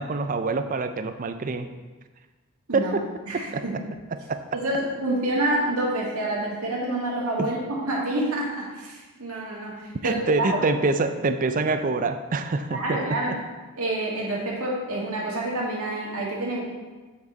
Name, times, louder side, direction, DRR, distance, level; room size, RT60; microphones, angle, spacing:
voice 1, 0.0-1.7 2.7-3.1 3.3-3.6 4.3-4.4 7.4-7.5 10.0-13.4, right 3 dB, 35° right, 9 dB, 0.4 m, -26 dB
voice 2, 3.3-3.7 4.5-10.6 12.7-13.3 13.8-16.6, right 1 dB, 75° right, -4 dB, 1.9 m, -28 dB
7.7 x 5.0 x 4.0 m, 1.3 s
head